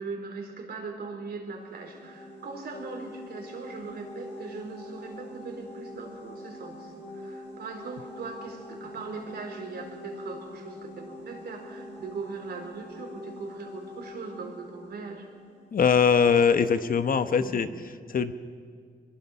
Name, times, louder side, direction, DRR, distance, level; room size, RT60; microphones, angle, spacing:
voice 1, 0.0-15.3 17.4-17.6, right 4 dB, 70° right, 2 dB, 4.2 m, -40 dB
sound 1, 1.5-16.2, left 1 dB, 80° left, 7.1 m, -44 dB
voice 2, 15.7-17.7 18.1-18.3, left 6 dB, 55° left, 11 dB, 1.0 m, -22 dB
22.5 x 21.5 x 5.6 m, 2.1 s
cardioid pair, 75°, 18 cm